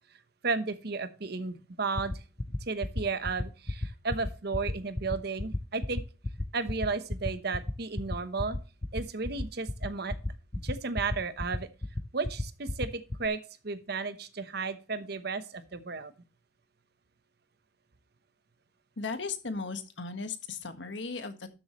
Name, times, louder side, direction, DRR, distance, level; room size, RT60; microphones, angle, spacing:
voice 1, 0.4-2.2 2.7-6.0 6.5-8.6 8.9-10.1 10.6-11.7 12.1-16.1, right 4 dB, 60° right, 12 dB, 1.0 m, -33 dB
sound 1, 2.0-13.3, left 1 dB, 20° left, 0.5 m, -32 dB
voice 2, 19.0-21.5, left 4 dB, 85° left, 8 dB, 1.5 m, -36 dB
12.5 x 7.1 x 3.1 m, 0.34 s
head